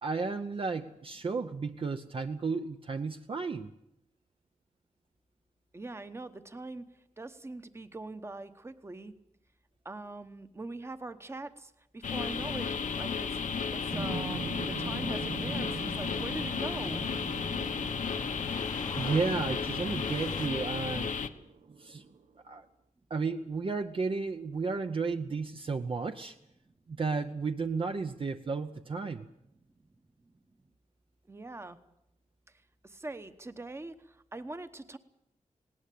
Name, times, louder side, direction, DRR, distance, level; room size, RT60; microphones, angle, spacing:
voice 1, 0.0-3.7 19.0-21.1 21.8-22.0 22.4-22.6 23.1-26.3 26.9-29.3, right 4 dB, 40° right, 6 dB, 0.7 m, -33 dB
voice 2, 5.7-6.8 7.2-9.1 9.8-12.7 13.0-13.3 13.7-17.0 31.3-31.8 32.8-35.0, right 2 dB, 20° right, 10 dB, 1.1 m, -42 dB
sound 1, 12.0-21.3, left 6 dB, 70° left, 1.1 m, -33 dB
sound 2, 12.1-20.5, left 3 dB, 30° left, 0.9 m, -46 dB
sound 3, 13.9-18.4 19.7-19.8 20.2-22.3, right 5 dB, 85° right, 1.1 m, -41 dB
19.5 x 18.5 x 8.5 m, 0.81 s
wide cardioid pair, 175°, 13 cm